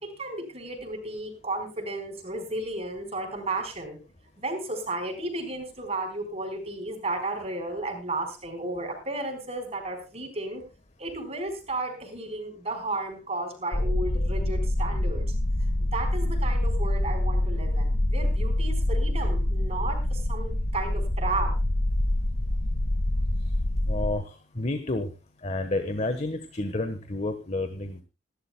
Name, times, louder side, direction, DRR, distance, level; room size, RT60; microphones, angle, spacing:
voice 1, 0.0-4.0 4.4-10.6 11.0-15.3 15.9-21.6, right 2 dB, 35° right, 5 dB, 4.3 m, -33 dB
sound 1, 13.7-24.1, left 1 dB, 70° left, 1.5 m, -26 dB
voice 2, 23.9-25.1 25.4-28.0, left 2 dB, 35° left, 8 dB, 1.2 m, -30 dB
26.0 x 12.0 x 2.2 m, 0.30 s
head